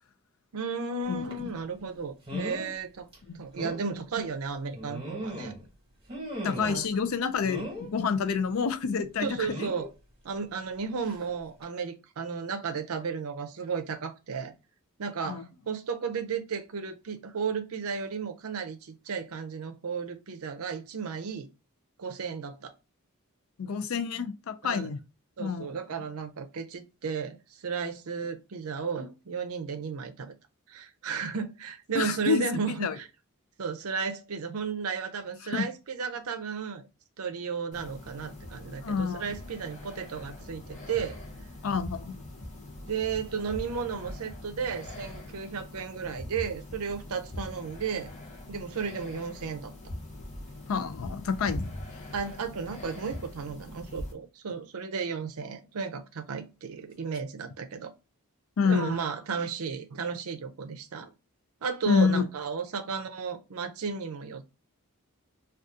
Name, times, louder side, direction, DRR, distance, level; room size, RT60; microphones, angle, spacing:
voice 1, 0.5-3.1 3.3-5.5 6.6-6.8 9.2-9.9 10.2-14.5 15.0-21.5 22.0-22.7 24.6-24.9 25.4-30.3 30.7-33.1 33.6-36.8 37.2-41.2 42.9-48.1 48.5-49.7 52.1-57.9 58.6-61.1 61.6-64.4, right 5 dB, 75° right, 0.5 m, -34 dB
sound 1, 1.3-1.5 2.3-2.7 3.1-3.2 3.6-3.8 4.7-5.7 6.1-6.8 7.4-7.9 9.5-9.9 11.0-11.2 11.6-11.7, equal, 25° right, 1.2 m, -37 dB
voice 2, 6.4-9.5 15.3-15.5 23.6-25.0 25.4-25.7 31.9-33.0 35.5-35.7 38.8-39.4 41.6-42.2 50.7-51.7 58.6-59.0 61.9-62.3, left 6 dB, 65° left, 0.4 m, -28 dB
sound 2, 37.7-54.1, left 1 dB, 35° left, 0.7 m, -42 dB
2.6 x 2.3 x 3.5 m
head